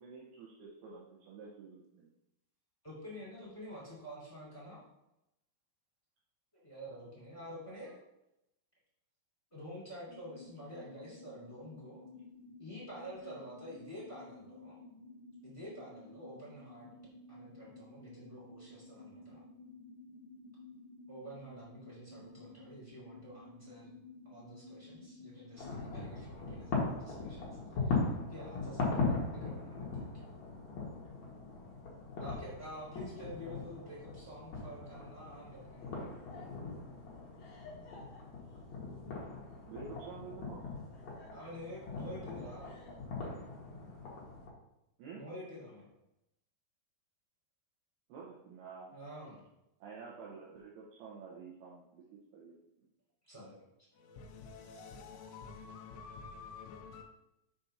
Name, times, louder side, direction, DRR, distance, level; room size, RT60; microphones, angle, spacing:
voice 1, 0.0-2.1 39.7-40.6 45.0-45.2 48.1-48.9 49.8-52.0 52.3-52.9, right 5 dB, 75° right, 2.3 m, -49 dB
voice 2, 2.8-4.8 6.5-8.0 9.5-12.0 12.6-14.8 15.4-16.9 17.3-19.4 21.1-23.9 24.2-28.0 28.3-30.2 32.2-35.9 41.3-42.7 45.2-45.9 48.9-49.5 53.2-53.6, equal, 10° left, 1.8 m, -48 dB
sound 1, 10.0-25.7, left 2 dB, 15° right, 1.7 m, -54 dB
sound 2, 25.6-44.5, left 3 dB, 60° left, 1.8 m, -39 dB
voice 3, 53.9-57.0, left 5 dB, 80° left, 2.9 m, -49 dB
7.8 x 4.2 x 5.7 m
omnidirectional pair, 6.0 m